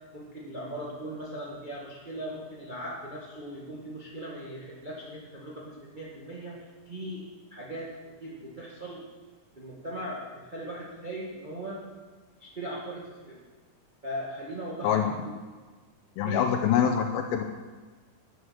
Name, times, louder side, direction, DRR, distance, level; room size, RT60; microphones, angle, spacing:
voice 1, 0.1-9.1 9.6-11.8 12.4-13.4 14.0-15.1 16.2-16.5, right 1 dB, 40° right, -4 dB, 0.7 m, -39 dB
voice 2, 16.2-17.4, left 8 dB, 80° left, 4 dB, 2.5 m, -25 dB
11.5 x 9.6 x 6.3 m, 1.4 s
omnidirectional pair, 4.3 m